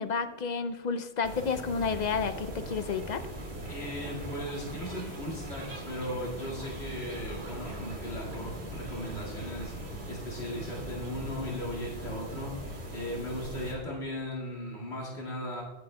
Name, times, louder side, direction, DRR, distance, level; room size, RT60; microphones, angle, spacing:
voice 1, 0.0-3.3, left 5 dB, 55° left, 10 dB, 0.5 m, -31 dB
sound 1, 1.2-13.7, right 1 dB, 75° right, 2.1 m, -40 dB
voice 2, 3.7-9.7 10.1-12.5 12.9-15.6, left 1 dB, 80° left, -4 dB, 2.4 m, -37 dB
22.5 x 7.8 x 2.2 m, 1.4 s
omnidirectional pair, 1.1 m